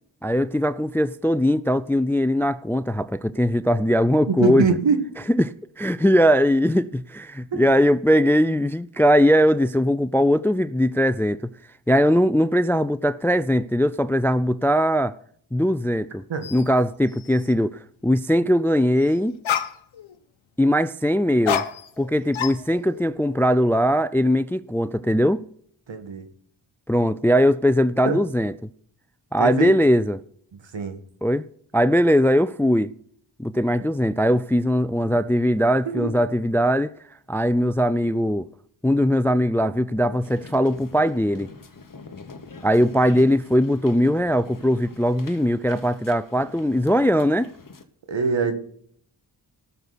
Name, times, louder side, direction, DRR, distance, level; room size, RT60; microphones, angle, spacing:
voice 1, 0.2-4.7 5.4-11.5 11.9-15.1 15.5-16.2 16.5-19.3 20.6-21.6 22.0-25.4 26.9-28.5 29.3-30.2 31.2-31.4 31.7-32.9 33.4-36.9 37.3-38.5 38.8-41.5 42.6-47.5, equal, 5° left, 0.3 m, -20 dB
voice 2, 4.3-5.0 7.5-7.7 16.3-16.5 25.9-26.3 28.0-28.2 29.4-29.7 30.7-31.0 35.9-36.2 48.1-48.6, right 5 dB, 70° right, 1.8 m, -23 dB
sound 1, 16.4-16.7 17.1-17.5 19.0-19.1 19.4-20.2 21.5-22.1 22.3-23.1, left 8 dB, 80° left, 1.0 m, -28 dB
sound 2, 40.2-47.8, left 4 dB, 45° left, 1.5 m, -45 dB
18.0 x 6.8 x 4.1 m
cardioid pair, 70°, 46 cm